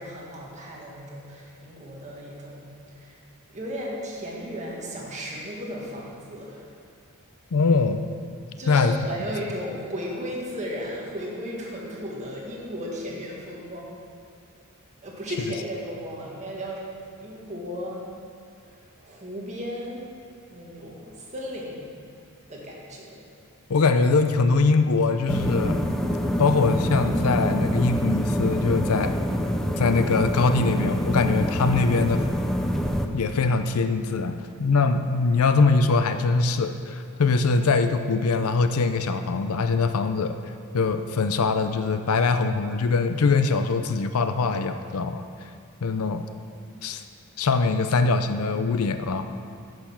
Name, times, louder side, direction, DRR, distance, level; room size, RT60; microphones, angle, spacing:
voice 1, 0.0-3.2 3.5-6.7 8.6-14.0 15.0-16.8 17.2-18.1 18.6-20.0 20.5-21.9 22.5-23.2, equal, 35° right, -4 dB, 1.9 m, -35 dB
voice 2, 7.5-8.0 8.7-8.9 23.7-25.8 26.4-29.2 29.8-32.2 33.1-40.4 40.7-45.2 45.8-46.2 46.8-47.0 47.4-49.2, left 4 dB, 75° left, 9 dB, 0.6 m, -22 dB
sound 1, 25.3-33.1, equal, ahead, 0.5 m, -25 dB
10.5 x 6.7 x 5.8 m, 2.4 s
head